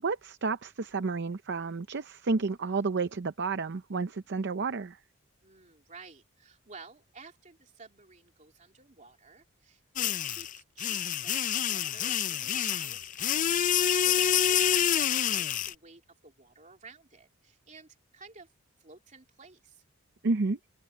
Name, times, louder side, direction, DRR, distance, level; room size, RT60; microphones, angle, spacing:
voice 1, 0.0-5.0 20.2-20.6, right 4 dB, 55° right, 0.6 m, -31 dB
voice 2, 5.4-18.5 18.8-19.8, right 4 dB, 35° right, 2.9 m, -53 dB
sound 1, 10.0-15.7, left 9 dB, 40° left, 0.5 m, -27 dB
open air
head